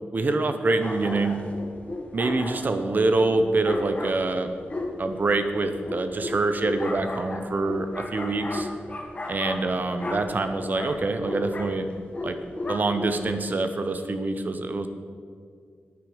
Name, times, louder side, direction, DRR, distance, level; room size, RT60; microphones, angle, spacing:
voice 1, 0.1-1.4 2.1-4.5 5.0-8.7 9.3-11.9 12.2-12.4 12.7-14.9, right 2 dB, 45° right, 8 dB, 0.7 m, -25 dB
sound 1, 0.8-13.4, left 2 dB, 30° left, 1.1 m, -35 dB
9.4 x 9.2 x 5.0 m, 2.2 s
wide cardioid pair, 125°, 4 cm